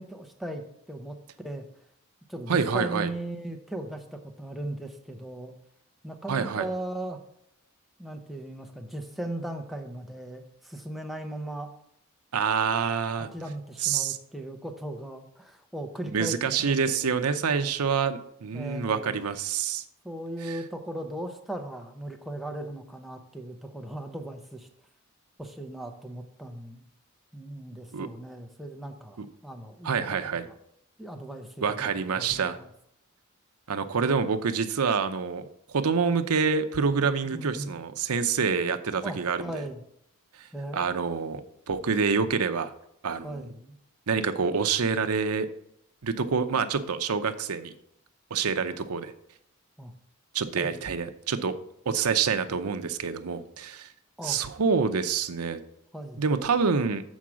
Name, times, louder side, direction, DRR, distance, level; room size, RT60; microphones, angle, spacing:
voice 1, 0.0-1.6 2.3-5.5 6.0-7.2 8.0-11.7 13.3-17.7 18.5-19.2 20.0-24.7 25.4-26.8 27.3-30.0 31.0-31.9 32.2-32.6 37.2-37.8 39.0-39.8 40.5-41.0 43.2-43.8 49.8-49.9 50.6-50.7 54.2-54.4 55.9-56.2, right 1 dB, ahead, 3 dB, 0.7 m, -38 dB
voice 2, 2.5-3.1 6.3-6.7 12.3-13.3 13.8-14.2 16.1-19.8 20.5-20.6 27.9-28.1 29.2-29.3 29.8-30.4 31.6-32.6 33.7-39.6 40.7-41.4 41.7-42.7 43.0-43.4 44.1-45.5 46.0-47.7 48.3-49.1 50.3-51.5 51.9-53.9 54.2-55.6 56.2-57.0, right 5 dB, 85° right, 9 dB, 0.7 m, -27 dB
7.3 x 4.7 x 6.2 m, 0.75 s
head